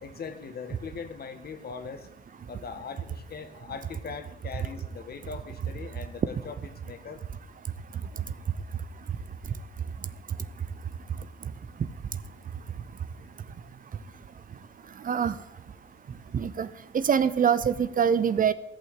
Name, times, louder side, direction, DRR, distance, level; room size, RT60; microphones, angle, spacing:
voice 1, 0.0-2.1 2.5-7.2, left 5 dB, 50° left, 9 dB, 1.6 m, -40 dB
voice 2, 15.0-15.4 16.3-16.7 16.9-18.5, right 7 dB, 45° right, 15 dB, 0.7 m, -24 dB
14.5 x 5.7 x 8.9 m, 0.85 s
cardioid pair, 90°, 20 cm